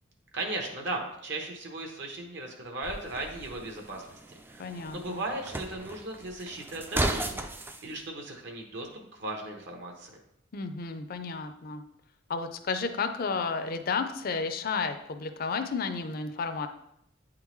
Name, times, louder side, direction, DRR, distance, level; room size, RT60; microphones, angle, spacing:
voice 1, 0.3-4.1 4.5-7.5 7.8-10.2, right 2 dB, 60° right, 2 dB, 1.0 m, -37 dB
sound 1, 2.8-7.8, right 2 dB, 10° right, 0.3 m, -35 dB
voice 2, 4.6-5.2 10.5-11.8 12.3-16.7, left 4 dB, 50° left, 7 dB, 0.5 m, -32 dB
8.9 x 3.7 x 3.1 m, 0.76 s
head